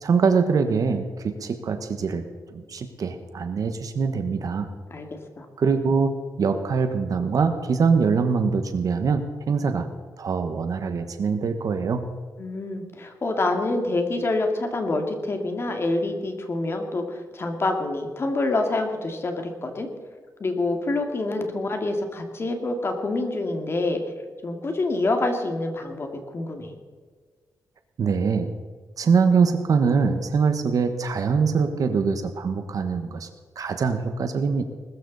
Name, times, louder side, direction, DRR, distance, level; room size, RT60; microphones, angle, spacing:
voice 1, 0.0-2.2 2.5-4.7 5.6-9.9 10.2-12.1 28.0-28.5 29.0-33.3 33.6-34.6, right 5 dB, 60° right, 7 dB, 1.3 m, -23 dB
voice 2, 4.9-5.5 12.4-19.9 20.4-24.1 24.4-26.8, left 2 dB, 35° left, 4 dB, 2.2 m, -27 dB
20.5 x 13.5 x 4.1 m, 1.5 s
wide cardioid pair, 135°, 7 cm